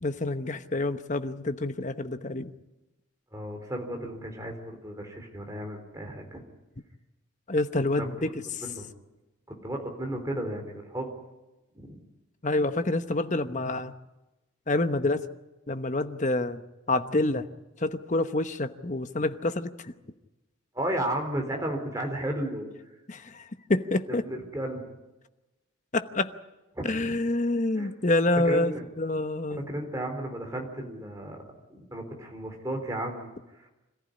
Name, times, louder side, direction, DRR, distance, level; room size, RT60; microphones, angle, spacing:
voice 1, 0.0-2.5 7.5-8.6 12.4-13.9 14.7-15.3 15.7-16.6 16.9-17.5 17.8-19.9 23.1-24.3 25.9-26.3 26.8-29.7, left 2 dB, 35° left, 10 dB, 1.0 m, -27 dB
voice 2, 3.3-6.4 8.0-8.3 8.6-8.9 9.6-11.1 11.7-12.0 20.7-22.7 24.1-24.8 26.7-27.2 27.7-27.9 28.4-28.8 29.5-31.4 31.7-33.3, right 1 dB, 15° right, 2 dB, 4.0 m, -34 dB
26.5 x 15.0 x 10.0 m, 1.0 s
head